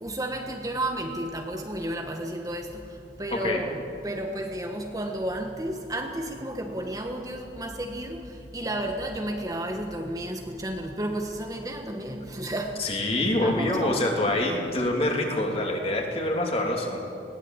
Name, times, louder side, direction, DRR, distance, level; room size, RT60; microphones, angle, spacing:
voice 1, 0.0-2.8 3.2-8.2 8.5-12.8 13.4-14.1, right 1 dB, 20° right, 3 dB, 1.4 m, -32 dB
voice 2, 3.3-3.6 12.8-17.0, left 1 dB, 35° left, 1 dB, 3.1 m, -26 dB
21.0 x 17.0 x 8.9 m, 2.5 s
head